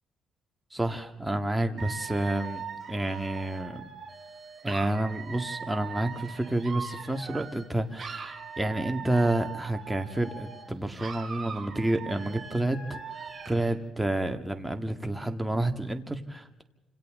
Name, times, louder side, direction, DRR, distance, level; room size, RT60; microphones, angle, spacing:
voice 1, 0.7-3.9 4.6-13.0 13.5-16.6, right 1 dB, 5° right, 5 dB, 2.0 m, -29 dB
Dog / Alarm, 1.8-7.7 8.0-10.7 11.0-13.7, right 6 dB, 35° right, 5.0 m, -40 dB
29.0 x 27.0 x 3.8 m, 1.0 s
cardioid pair, 90°, 0 cm